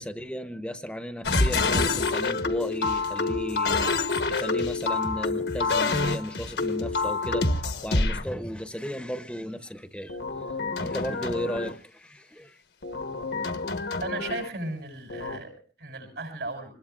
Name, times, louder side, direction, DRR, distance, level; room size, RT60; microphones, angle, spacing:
voice 1, 0.0-10.2 10.8-12.6, equal, 5° left, 9 dB, 0.7 m, -35 dB
sound 1, 1.2-8.2 10.1-11.8 12.8-14.5 15.1-15.4, left 3 dB, 85° left, 1.3 m, -27 dB
voice 2, 14.0-16.7, right 2 dB, 85° right, 4 dB, 7.3 m, -35 dB
26.0 x 20.5 x 2.4 m, 0.36 s
head